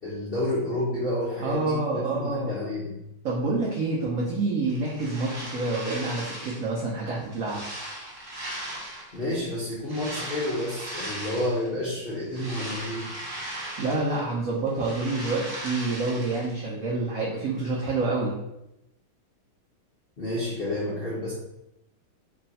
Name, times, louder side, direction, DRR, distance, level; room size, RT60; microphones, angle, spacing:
voice 1, 0.0-3.0 9.1-13.1 20.2-21.3, left 1 dB, 60° left, -9 dB, 0.5 m, -30 dB
voice 2, 1.4-2.5 3.2-7.6 13.8-18.3, right 3 dB, 85° right, -5 dB, 0.7 m, -27 dB
sound 1, 4.7-6.7 7.2-9.2 9.8-11.7 12.1-14.3 14.6-16.5, right 1 dB, 30° right, 1.0 m, -38 dB
3.3 x 2.3 x 4.0 m, 0.87 s
omnidirectional pair, 2.3 m